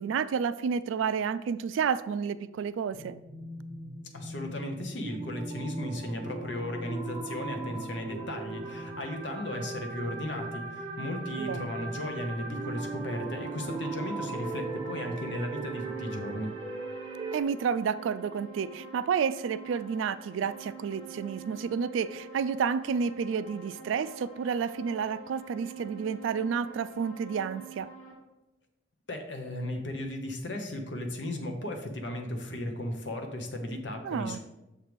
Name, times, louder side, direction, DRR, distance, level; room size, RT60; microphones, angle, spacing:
voice 1, 0.0-3.2 11.4-11.7 17.3-27.9 34.0-34.4, right 6 dB, 85° right, 14 dB, 0.3 m, -30 dB
sound 1, 2.9-17.4, right 3 dB, 25° right, 1.2 m, -39 dB
voice 2, 4.1-16.5 29.1-34.4, left 1 dB, 65° left, 3 dB, 0.9 m, -35 dB
sound 2, 11.8-28.1, right 5 dB, 25° left, 1.6 m, -47 dB
6.5 x 3.1 x 5.1 m, 0.98 s
head